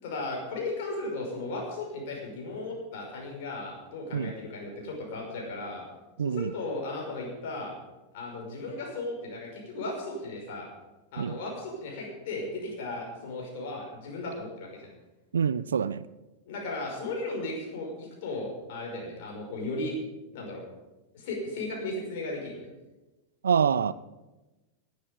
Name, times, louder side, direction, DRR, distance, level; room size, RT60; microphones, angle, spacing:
voice 1, 0.0-5.8 6.2-7.7 8.1-10.7 11.1-14.9 16.5-19.9 20.3-20.6 21.1-22.7, left 2 dB, 50° left, 5.8 m, -36 dB
voice 2, 6.2-6.5 11.2-11.3 15.3-16.0 23.4-23.9, right 7 dB, 70° right, 0.4 m, -26 dB
19.0 x 9.6 x 5.3 m
figure-of-eight pair, 90°, 0 cm